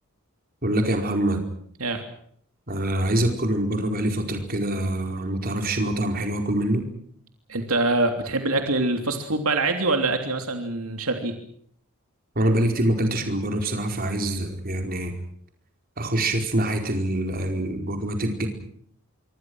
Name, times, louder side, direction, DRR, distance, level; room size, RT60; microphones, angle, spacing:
voice 1, 0.6-1.4 2.7-6.9 12.3-15.1 16.0-18.5, right 1 dB, 40° right, 4 dB, 4.8 m, -25 dB
voice 2, 7.5-11.3, right 2 dB, 75° right, 5 dB, 3.2 m, -24 dB
26.5 x 24.0 x 6.4 m, 0.63 s
head